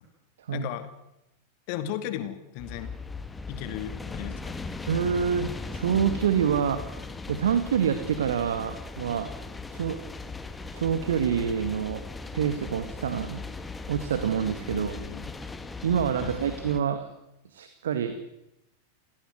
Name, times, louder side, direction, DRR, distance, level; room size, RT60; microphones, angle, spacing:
voice 1, 0.5-0.9 1.7-2.9 3.5-4.7 14.7-15.3 16.2-16.5, left 11 dB, 45° left, 10 dB, 2.6 m, -36 dB
sound 1, 2.6-16.8, left 3 dB, 10° left, 1.8 m, -38 dB
voice 2, 4.9-6.8 7.3-9.3 9.7-10.0 10.7-12.0 12.3-13.4 13.9-15.0 15.8-17.1 17.5-18.1, right 8 dB, 60° right, 10 dB, 1.9 m, -27 dB
29.5 x 17.5 x 8.1 m, 0.89 s
figure-of-eight pair, 90°, 0 cm